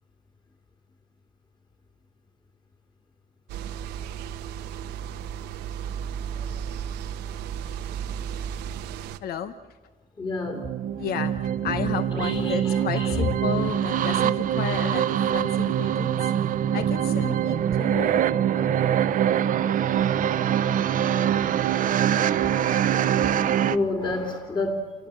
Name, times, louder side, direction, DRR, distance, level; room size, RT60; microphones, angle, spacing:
sound 1, 3.5-9.2, right 8 dB, 85° right, 1.1 m, -34 dB
voice 1, 9.2-9.5 11.0-15.1 15.3-16.3 16.7-18.7, left 8 dB, 65° left, 10 dB, 1.0 m, -33 dB
voice 2, 10.2-10.7 12.1-13.3 14.0-14.1 17.9-18.1 20.5-20.7 23.3-25.1, left 2 dB, 25° left, 2 dB, 2.8 m, -30 dB
sound 2, 10.5-23.8, right 9 dB, 55° right, 0.8 m, -24 dB
29.5 x 18.0 x 7.7 m, 1.3 s
cardioid pair, 110°, 17 cm